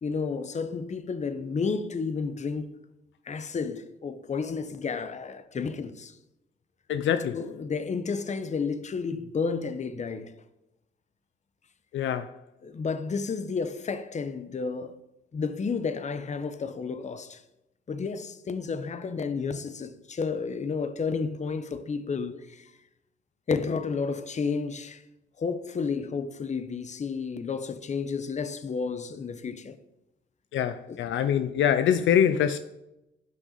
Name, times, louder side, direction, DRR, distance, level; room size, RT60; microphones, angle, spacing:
voice 1, 0.0-2.8 3.2-6.2 7.3-10.3 12.6-15.0 15.3-17.4 17.9-22.7 23.5-25.0 25.4-29.8 30.9-31.0, left 5 dB, 35° left, 0.9 m, -31 dB
voice 2, 6.9-7.4 11.9-12.4 30.5-32.6, left 9 dB, 70° left, 0.6 m, -24 dB
15.5 x 6.3 x 4.1 m
cardioid pair, 90°, 20 cm